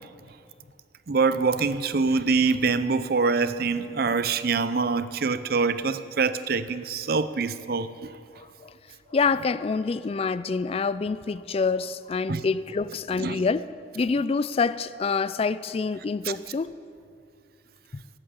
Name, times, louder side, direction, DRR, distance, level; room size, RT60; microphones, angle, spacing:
voice 1, 1.1-7.9 12.3-12.4 13.2-13.4, right 4 dB, 55° right, 0.6 m, -24 dB
voice 2, 8.4-8.7 9.1-13.6 13.9-16.7 17.9-18.0, left 4 dB, 35° left, 0.3 m, -26 dB
17.5 x 9.0 x 7.2 m
head